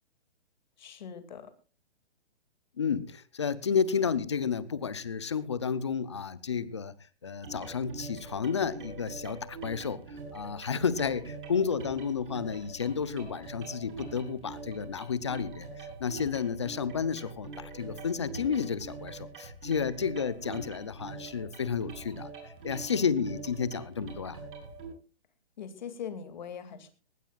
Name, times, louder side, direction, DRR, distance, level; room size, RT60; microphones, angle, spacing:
voice 1, 0.8-1.5 25.6-26.9, left 7 dB, 40° left, 10 dB, 2.5 m, -41 dB
voice 2, 2.8-7.0 7.2-24.4, left 6 dB, 25° left, 17 dB, 0.6 m, -31 dB
sound 1, 7.4-24.9, right 4 dB, 50° right, 7.8 m, -44 dB
20.5 x 18.5 x 2.4 m, 0.35 s
hypercardioid pair, 175°, 33 cm